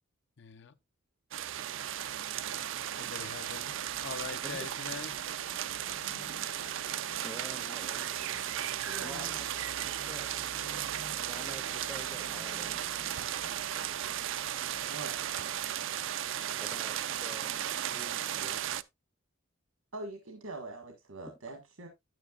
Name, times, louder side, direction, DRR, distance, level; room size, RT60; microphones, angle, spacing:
voice 1, 0.4-0.8 3.0-5.2 6.6-6.7, left 5 dB, 60° left, 0.7 m, -43 dB
sound 1, 1.3-18.8, right 11 dB, 65° right, 0.4 m, -35 dB
sound 2, 3.3-17.2, left 1 dB, 85° left, 1.5 m, -55 dB
voice 2, 7.2-8.3 9.0-10.4 11.2-12.8 16.6-17.7 17.9-18.6, equal, 5° right, 0.6 m, -48 dB
voice 3, 8.8-9.3 14.9-15.1 19.9-21.9, right 2 dB, 85° right, 1.8 m, -43 dB
9.6 x 9.1 x 2.4 m
head